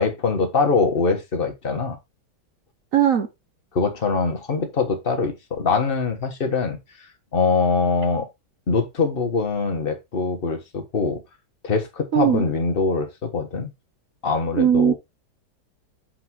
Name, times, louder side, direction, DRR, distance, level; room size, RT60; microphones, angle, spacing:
voice 1, 0.0-2.0 3.7-8.3 8.7-11.2 11.6-13.7 14.2-14.9, left 4 dB, 30° left, 1.3 m, -23 dB
voice 2, 2.9-3.3 12.1-12.4 14.6-14.9, right 9 dB, 60° right, 0.9 m, -18 dB
5.9 x 4.9 x 4.5 m
omnidirectional pair, 2.2 m